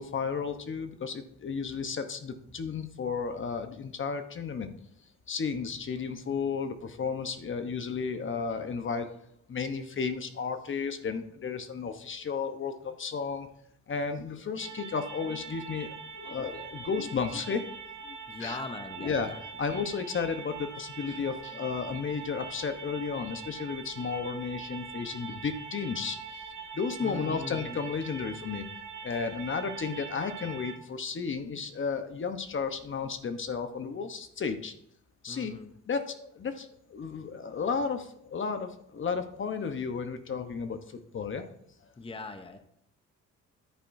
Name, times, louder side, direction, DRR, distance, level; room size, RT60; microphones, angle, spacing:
voice 1, 0.0-4.7 5.3-9.1 9.5-13.5 13.9-17.7 18.0-18.6 19.0-19.3 19.6-26.5 26.7-28.7 29.0-34.7 35.2-35.6 35.9-41.5, left 5 dB, 40° left, 8 dB, 1.0 m, -33 dB
sound 1, 14.6-30.8, right 6 dB, 80° right, 2.3 m, -43 dB
voice 2, 18.3-19.4 19.7-19.8 27.0-27.8 35.3-35.7 42.0-42.6, left 3 dB, 20° left, 7 dB, 0.8 m, -40 dB
10.5 x 8.7 x 2.7 m, 0.73 s
cardioid pair, 90°, 30 cm